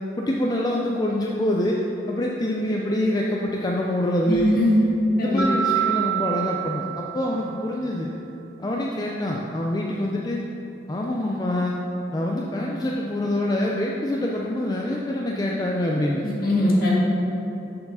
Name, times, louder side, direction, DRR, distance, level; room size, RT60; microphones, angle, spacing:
voice 1, 0.2-4.5 5.1-8.1 8.6-10.4 10.9-11.8 12.1-16.2, left 1 dB, 20° left, -2 dB, 0.4 m, -25 dB
voice 2, 4.3-4.9 5.2-5.4 16.2-17.0, left 1 dB, 55° left, -5 dB, 1.6 m, -20 dB
Mallet percussion, 5.4-7.8, right 10 dB, 10° right, 0.7 m, -27 dB
6.5 x 4.7 x 5.5 m, 2.9 s
head